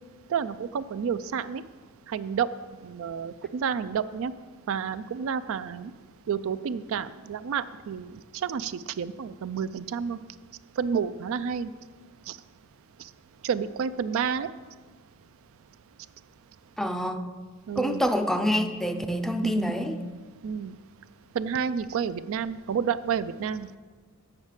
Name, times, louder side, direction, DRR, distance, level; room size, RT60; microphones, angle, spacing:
voice 1, 0.3-1.6 2.1-2.5 2.8-4.3 4.7-5.9 6.3-8.1 8.4-10.2 10.8-11.7 12.3-12.4 13.4-14.5 17.7-18.0 19.4-19.7 20.4-20.8 21.3-23.7, right 7 dB, 65° right, 13 dB, 0.4 m, -30 dB
voice 2, 16.8-17.2 17.8-20.0, equal, ahead, 7 dB, 0.5 m, -26 dB
7.3 x 6.5 x 7.2 m, 1.5 s
head